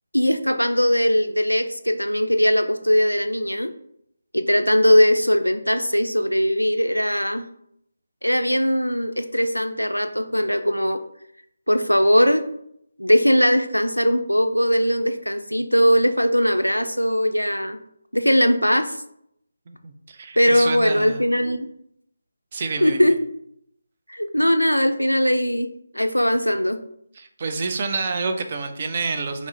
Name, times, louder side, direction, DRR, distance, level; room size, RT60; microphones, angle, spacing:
voice 1, 0.1-3.7 4.3-7.5 8.2-11.0 11.7-12.5 13.0-17.8 18.1-19.0 20.4-21.7 22.8-23.1 24.1-26.8, equal, 90° left, 8 dB, 0.4 m, -20 dB
voice 2, 19.7-21.3 22.5-23.1 27.1-29.5, right 4 dB, 35° right, 6 dB, 0.4 m, -28 dB
5.8 x 2.0 x 2.6 m, 0.72 s
figure-of-eight pair, 155°, 0 cm